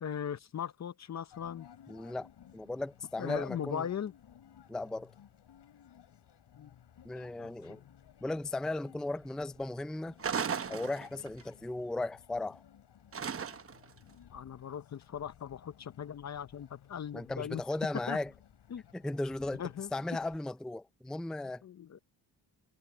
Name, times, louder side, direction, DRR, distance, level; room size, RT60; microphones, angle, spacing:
voice 1, 0.0-1.7 3.2-4.1 6.6-6.7 7.4-7.9 14.3-17.6 18.1-18.2 18.7-18.8 19.6-19.9 21.6-22.0, left 8 dB, 40° left, 0.7 m, -39 dB
sound 1, 1.3-20.4, left 9 dB, 70° left, 7.1 m, -58 dB
voice 2, 1.9-3.9 4.7-5.1 7.0-7.8 8.2-10.2 10.7-12.6 17.1-18.3 18.9-19.6 19.9-21.6, left 2 dB, ahead, 0.5 m, -36 dB
sound 2, 10.2-11.4 13.1-13.9, right 7 dB, 30° right, 0.9 m, -35 dB
cardioid pair, 115°, 43 cm